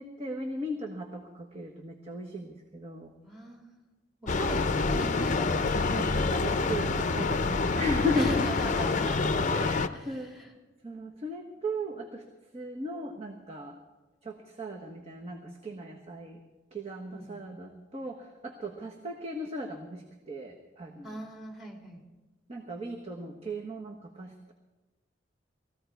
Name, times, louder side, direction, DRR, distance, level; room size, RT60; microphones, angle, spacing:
voice 1, 0.0-3.1 5.7-8.5 9.5-10.4 10.8-12.2 12.5-13.8 14.2-16.4 16.7-21.1 22.5-24.5, equal, 35° right, 1 dB, 1.3 m, -36 dB
voice 2, 3.2-3.6 4.2-5.6 8.1-9.4 9.9-10.5 17.1-17.5 21.0-22.1, equal, ahead, 0 dB, 3.0 m, -40 dB
sound 1, 4.3-9.9, left 3 dB, 40° left, 0.6 m, -27 dB
19.5 x 15.0 x 4.6 m, 1.2 s
head